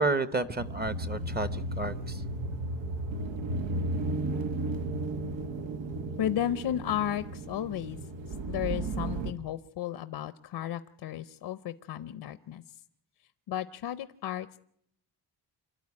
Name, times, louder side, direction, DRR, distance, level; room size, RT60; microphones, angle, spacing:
voice 1, 0.0-2.2, right 3 dB, 20° right, 13 dB, 0.9 m, -31 dB
sound 1, 0.6-9.3, right 2 dB, 90° right, 1.6 m, -34 dB
voice 2, 6.2-8.0 8.5-12.6 13.5-14.6, left 11 dB, 65° left, 13 dB, 0.8 m, -33 dB
26.0 x 12.5 x 9.7 m, 0.73 s
cardioid pair, 145°, 43 cm